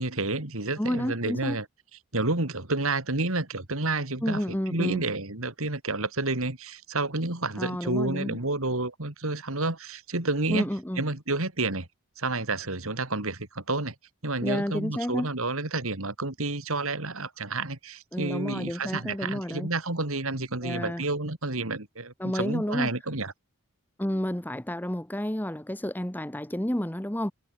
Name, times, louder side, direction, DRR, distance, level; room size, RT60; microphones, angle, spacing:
voice 1, 0.0-1.6 2.1-4.4 4.7-10.7 11.0-11.9 12.2-13.9 14.2-23.3, right 2 dB, 70° right, 3.3 m, -30 dB
voice 2, 0.8-1.6 4.2-5.0 7.6-8.4 10.5-11.0 14.4-15.3 18.1-19.7 20.6-21.0 22.2-22.9 24.0-27.3, equal, 10° left, 1.0 m, -30 dB
head